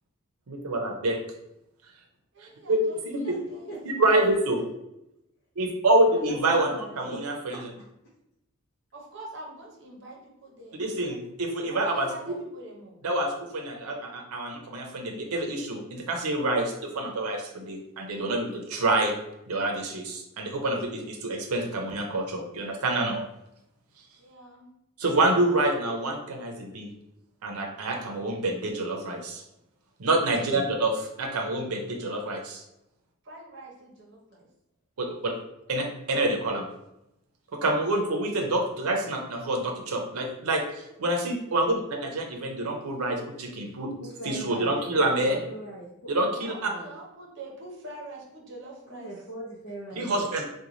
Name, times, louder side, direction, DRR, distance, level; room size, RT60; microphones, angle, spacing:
voice 1, 0.5-1.2 2.4-3.2 3.8-4.6 5.6-7.6 10.8-12.4 13.0-19.1 19.5-23.2 25.0-26.9 27.4-29.4 30.0-32.6 35.0-35.3 35.7-36.7 37.5-43.9 44.2-45.4 46.1-46.7 49.9-50.4, right 2 dB, 90° right, 2 dB, 0.6 m, -27 dB
voice 2, 2.3-3.8 8.9-11.3 11.7-13.1 24.2-24.7 33.2-34.5 46.3-49.1, right 2 dB, 55° right, -1 dB, 0.8 m, -45 dB
voice 3, 6.1-7.6 44.0-46.9 48.9-50.4, right 1 dB, 50° left, -5 dB, 0.5 m, -40 dB
3.0 x 2.2 x 3.8 m, 0.86 s
head